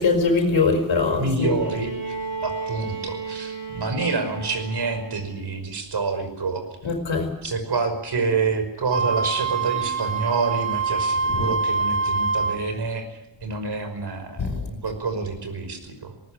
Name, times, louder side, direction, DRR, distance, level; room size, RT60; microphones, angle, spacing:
voice 1, 0.0-1.5 6.8-7.3 11.4-11.5 14.4-14.5, left 4 dB, 75° left, 3 dB, 4.6 m, -22 dB
voice 2, 1.2-2.1 2.4-6.6 7.4-13.1 13.4-16.1, right 4 dB, 60° right, 8 dB, 5.6 m, -27 dB
Bowed string instrument, 1.4-5.4 6.7-6.8, right 4 dB, 40° right, 5.4 m, -34 dB
Wind instrument woodwind instrument, 8.9-12.6, right 4 dB, 90° right, 2.1 m, -25 dB
20.0 x 19.0 x 9.7 m, 0.86 s
wide cardioid pair, 120°, 45 cm